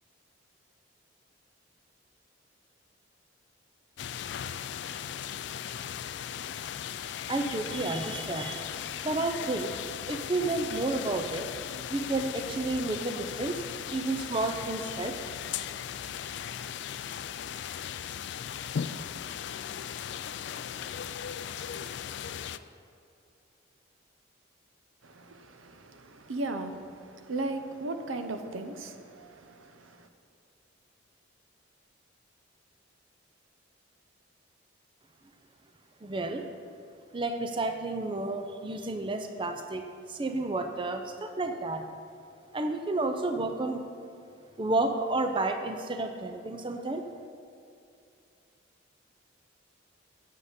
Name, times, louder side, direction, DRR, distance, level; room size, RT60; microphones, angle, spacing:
sound 1, 4.0-22.6, left 9 dB, 60° left, 0.3 m, -37 dB
voice 1, 7.3-8.7 9.0-9.8 10.1-11.5 11.9-13.6 13.9-15.2 36.0-36.5 37.1-41.8 42.5-43.8 44.6-47.1, right 2 dB, 25° right, 0.5 m, -31 dB
voice 2, 25.0-30.1, right 2 dB, 85° right, 0.7 m, -37 dB
8.7 x 8.2 x 5.1 m
head